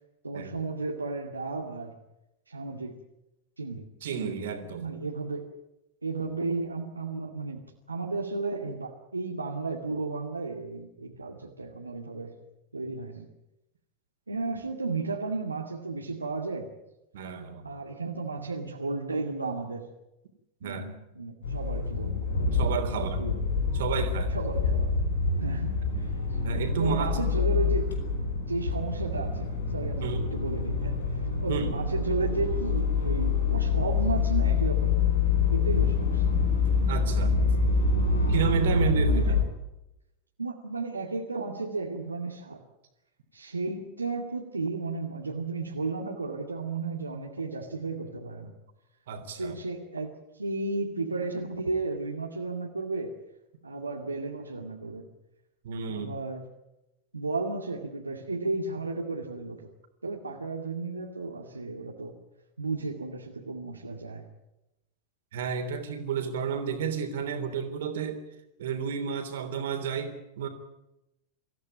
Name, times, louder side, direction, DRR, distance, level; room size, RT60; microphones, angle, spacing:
voice 1, 0.2-1.9 2.5-3.0 3.6-3.8 4.8-5.5 6.0-7.6 7.9-12.3 12.7-13.3 14.3-16.7 17.6-19.9 20.6-22.2 22.9-23.4 24.3-25.0 25.4-26.4 26.8-27.9 28.5-31.0 31.4-35.1 35.5-36.2 39.1-39.4 40.4-42.6 43.3-48.5 49.4-53.1 53.6-55.1 55.9-56.5 57.1-59.7 60.0-62.2 62.6-64.3, right 3 dB, 80° right, 0 dB, 2.3 m, -33 dB
voice 2, 4.0-4.8 17.1-17.7 20.6-20.9 22.5-23.2 23.7-24.4 26.4-27.1 30.0-30.2 31.5-31.7 36.9-37.3 38.3-39.2 49.1-49.5 55.6-56.1 65.3-68.2 68.6-70.5, right 6 dB, 60° right, 7 dB, 3.3 m, -31 dB
sound 1, 21.4-39.4, left 4 dB, 70° left, 4.8 m, -26 dB
25.0 x 15.5 x 9.3 m, 0.92 s
figure-of-eight pair, 90°, 0 cm